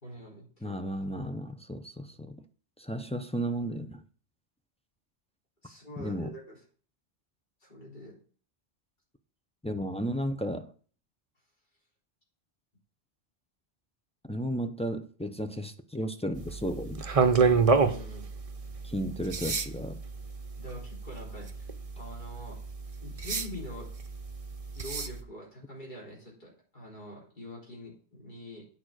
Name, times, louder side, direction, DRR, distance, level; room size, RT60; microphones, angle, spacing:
voice 1, 0.0-0.8 5.6-6.6 7.6-8.2 17.8-18.3 20.6-21.7 22.0-22.6 23.0-23.9 24.7-28.7, equal, 45° left, 4.0 m, -44 dB
voice 2, 0.6-2.4 2.8-4.0 6.0-6.3 9.6-10.7 14.3-17.1 18.8-20.0, equal, 10° left, 0.5 m, -34 dB
sound 1, 16.4-25.2, right 4 dB, 35° right, 0.8 m, -30 dB
8.7 x 5.0 x 6.3 m
omnidirectional pair, 1.1 m